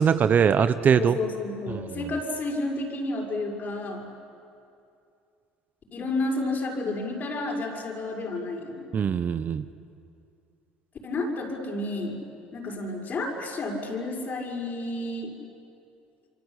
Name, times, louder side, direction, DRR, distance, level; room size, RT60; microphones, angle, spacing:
voice 1, 0.0-1.2 1.7-2.0 8.9-9.7, right 7 dB, 40° right, 12 dB, 0.9 m, -22 dB
voice 2, 0.9-4.1 5.9-8.8 11.0-12.2 12.5-15.3, left 2 dB, 45° left, 1 dB, 6.3 m, -31 dB
28.0 x 25.0 x 8.4 m, 2.5 s
hypercardioid pair, 75°, 4 cm